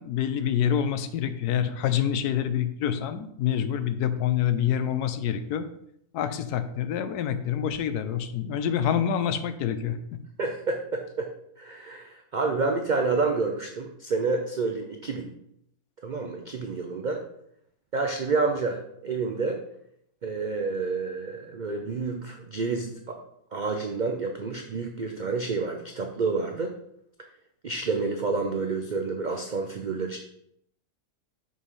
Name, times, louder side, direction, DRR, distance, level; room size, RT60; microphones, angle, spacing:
voice 1, 0.0-5.7 6.1-10.2, left 9 dB, 90° left, 11 dB, 1.1 m, -27 dB
voice 2, 10.4-11.3 11.6-15.3 16.0-17.2 17.9-19.6 20.2-23.2 23.5-26.7 27.6-30.2, right 4 dB, 90° right, 3 dB, 0.4 m, -29 dB
6.3 x 5.5 x 3.1 m, 0.74 s
omnidirectional pair, 1.6 m